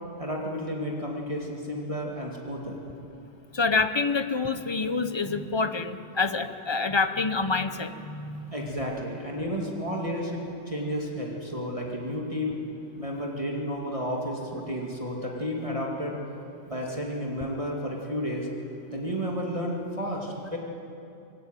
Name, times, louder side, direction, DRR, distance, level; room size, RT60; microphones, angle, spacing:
voice 1, 0.2-2.8 8.5-12.6 13.0-16.2 16.6-18.5 18.9-20.6, equal, 25° right, -2 dB, 2.4 m, -32 dB
voice 2, 3.5-8.7, left 4 dB, 25° left, 9 dB, 0.7 m, -27 dB
23.0 x 16.5 x 9.1 m, 2.7 s
omnidirectional pair, 1.3 m